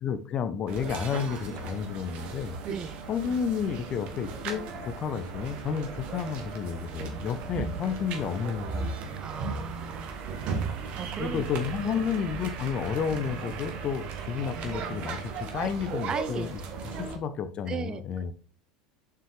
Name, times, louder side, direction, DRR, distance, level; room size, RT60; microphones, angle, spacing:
voice 1, 0.0-2.6 3.1-9.6 11.2-16.6 17.0-18.3, left 7 dB, 35° left, 12 dB, 0.7 m, -31 dB
sound 1, 0.7-17.2, right 5 dB, 45° right, 1.5 m, -36 dB
voice 2, 2.7-3.0 9.2-10.2 10.7-11.4 11.8-12.0 15.9-17.1 17.7-18.3, right 6 dB, 30° right, 13 dB, 0.6 m, -38 dB
7.0 x 6.0 x 3.3 m, 0.40 s
figure-of-eight pair, 75°, 3 cm